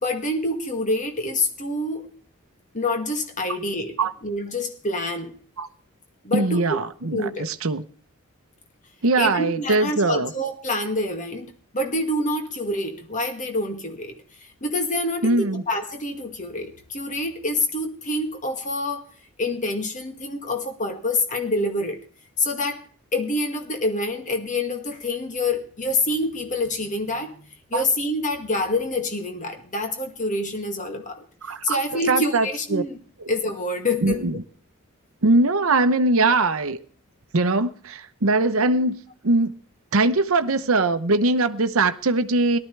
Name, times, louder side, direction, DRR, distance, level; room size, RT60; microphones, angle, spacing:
voice 1, 0.0-2.2 2.7-4.0 4.2-5.3 6.2-6.8 7.1-7.5 9.2-14.2 14.6-19.0 19.4-22.0 22.4-22.8 23.1-27.4 27.7-31.2 31.6-33.0 33.3-34.2, left 2 dB, 35° left, 2.1 m, -26 dB
voice 2, 6.3-7.8 9.0-10.3 15.2-15.6 27.7-27.8 31.4-31.8 32.1-32.5 32.7-32.8 33.2-33.3 34.0-34.4 35.2-36.8 37.3-39.5 39.9-42.6, right 2 dB, 70° right, 0.9 m, -21 dB
18.0 x 12.5 x 3.3 m
head